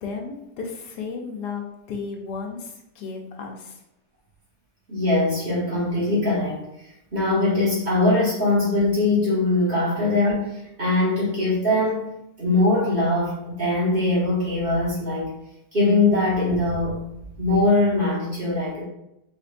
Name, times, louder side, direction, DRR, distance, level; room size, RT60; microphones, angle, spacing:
voice 1, 0.0-3.8, left 5 dB, 85° left, 1 dB, 1.3 m, -34 dB
voice 2, 4.9-6.7 7.1-12.1 12.4-15.3 15.7-17.0 17.4-18.8, left 2 dB, 35° right, -8 dB, 1.4 m, -21 dB
4.3 x 3.1 x 2.5 m, 0.85 s
omnidirectional pair, 1.8 m